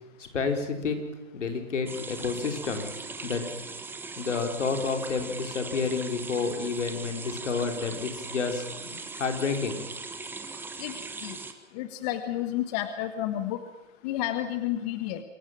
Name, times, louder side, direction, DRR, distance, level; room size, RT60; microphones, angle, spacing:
voice 1, 0.2-1.0 1.3-2.9 3.2-3.4 4.2-9.8, left 4 dB, 75° left, 5 dB, 4.7 m, -30 dB
sound 1, 1.9-11.5, right 4 dB, 5° right, 1.2 m, -40 dB
voice 2, 11.7-13.6 14.0-15.2, left 12 dB, 30° left, 9 dB, 1.5 m, -31 dB
25.5 x 15.5 x 9.1 m, 0.94 s
hypercardioid pair, 140°, 36 cm